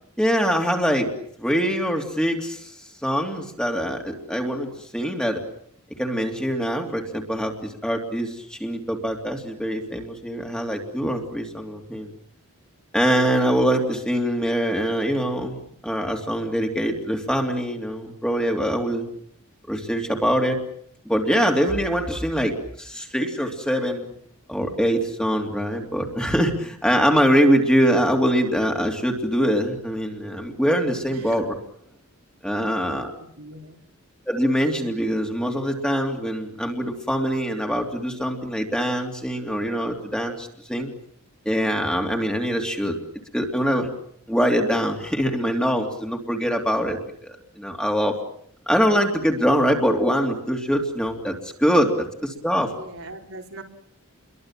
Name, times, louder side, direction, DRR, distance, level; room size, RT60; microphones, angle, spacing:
voice 1, 0.2-1.1 1.4-2.8 3.0-5.4 6.0-12.1 12.9-19.0 19.7-20.6 21.0-24.1 24.5-31.5 32.4-33.1 34.3-40.9 41.4-43.0 43.3-43.9 44.3-48.1 48.7-52.7, equal, 5° left, 2 dB, 3.0 m, -23 dB
voice 2, 31.1-31.6 33.2-33.8 52.7-53.6, right 2 dB, 70° right, 2 dB, 4.6 m, -40 dB
29.0 x 23.0 x 7.6 m, 0.67 s
head